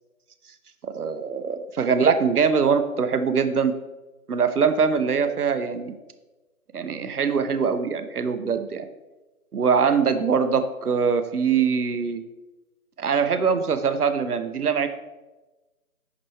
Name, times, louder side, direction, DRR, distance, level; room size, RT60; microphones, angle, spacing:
voice 1, 0.8-3.7 4.3-5.9 6.7-8.8 9.5-12.2 13.0-14.9, right 6 dB, 75° right, 10 dB, 0.7 m, -23 dB
6.0 x 6.0 x 3.1 m, 1.1 s
figure-of-eight pair, 160°, 45 cm